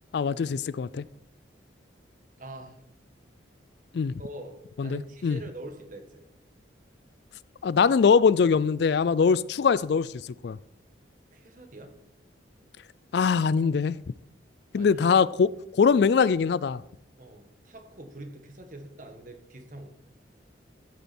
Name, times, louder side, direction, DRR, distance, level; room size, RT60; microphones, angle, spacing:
voice 1, 0.1-1.0 3.9-4.1 4.8-5.4 7.6-10.6 13.1-14.0 14.7-15.5 15.8-16.8, left 5 dB, 60° left, 18 dB, 0.3 m, -22 dB
voice 2, 2.4-2.8 4.2-6.3 11.3-11.9 14.7-15.0 17.2-19.9, right 1 dB, 45° right, 6 dB, 1.6 m, -44 dB
14.5 x 8.3 x 4.4 m, 0.80 s
head